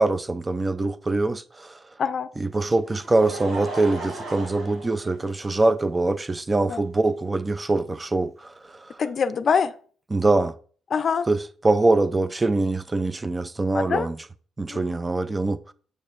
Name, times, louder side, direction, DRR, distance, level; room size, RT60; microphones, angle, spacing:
voice 1, 0.0-1.8 2.4-9.0 10.1-10.5 11.3-14.2 14.6-15.7, right 2 dB, 20° right, 0.5 m, -23 dB
Laughter, 2.6-5.8 6.6-6.7 8.2-8.3, right 2 dB, 75° right, 2.2 m, -37 dB
voice 2, 9.0-9.7 10.9-11.3 13.7-14.1 14.7-15.0, left 6 dB, 50° left, 0.5 m, -24 dB
6.6 x 6.3 x 2.5 m
cardioid pair, 90°, 0 cm